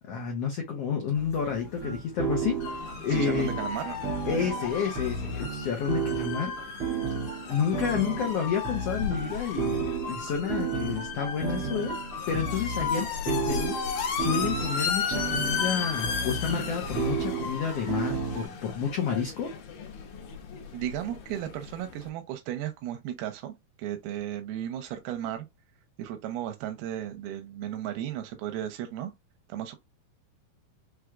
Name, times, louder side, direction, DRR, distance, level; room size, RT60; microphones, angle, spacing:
voice 1, 0.1-3.5 4.3-6.5 7.5-12.0 12.3-19.5, left 7 dB, 85° left, 1.4 m, -30 dB
sound 1, 1.1-6.2, left 1 dB, 20° left, 0.7 m, -48 dB
sound 2, 1.8-18.5, right 5 dB, 10° right, 1.0 m, -33 dB
sound 3, 2.6-22.1, left 6 dB, 65° left, 2.3 m, -35 dB
voice 2, 3.1-4.0 20.7-25.5 26.0-29.1 29.5-29.8, right 11 dB, 85° right, 2.6 m, -35 dB
6.1 x 3.2 x 2.3 m
omnidirectional pair, 4.3 m